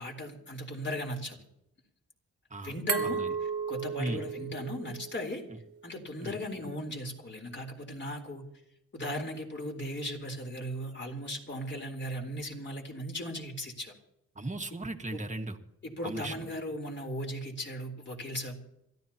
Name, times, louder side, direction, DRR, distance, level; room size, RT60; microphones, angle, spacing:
voice 1, 0.0-1.4 2.6-3.2 3.7-5.4 5.8-8.4 8.9-13.9 15.8-18.6, equal, 35° left, 2 dB, 3.8 m, -37 dB
Glass, 2.9-5.7, right 6 dB, 80° right, 2.2 m, -34 dB
voice 2, 14.3-15.6 16.0-16.3, right 2 dB, 25° right, 5 dB, 1.7 m, -36 dB
27.0 x 14.0 x 2.9 m, 0.80 s
cardioid pair, 85°, 31 cm